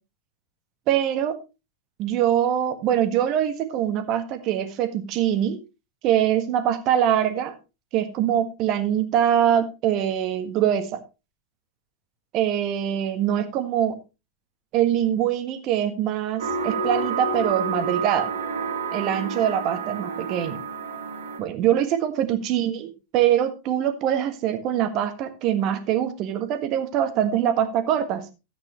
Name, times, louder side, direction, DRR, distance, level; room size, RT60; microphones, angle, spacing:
voice 1, 0.9-1.4 2.0-5.6 6.0-7.5 7.9-11.0 12.3-14.0 14.7-18.3 18.9-20.6 21.4-28.3, right 10 dB, 40° right, 10 dB, 1.6 m, -23 dB
sound 1, 16.4-21.4, right 4 dB, 60° right, 2.3 m, -29 dB
13.0 x 8.8 x 3.1 m, 0.28 s
figure-of-eight pair, 90°, 0 cm